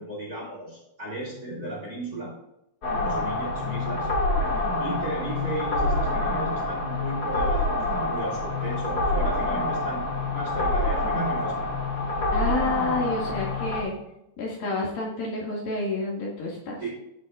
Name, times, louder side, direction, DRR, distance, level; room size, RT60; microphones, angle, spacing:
voice 1, 0.0-2.3 3.0-4.1 4.5-10.0 10.3-11.7 16.8-16.9, right 1 dB, 20° right, -3 dB, 3.2 m, -35 dB
sound 1, 2.8-13.8, left 2 dB, 30° left, 2.2 m, -26 dB
voice 2, 12.3-14.0 14.4-16.8, left 2 dB, 55° left, -3 dB, 3.5 m, -29 dB
16.0 x 7.5 x 2.5 m, 0.85 s
omnidirectional pair, 5.4 m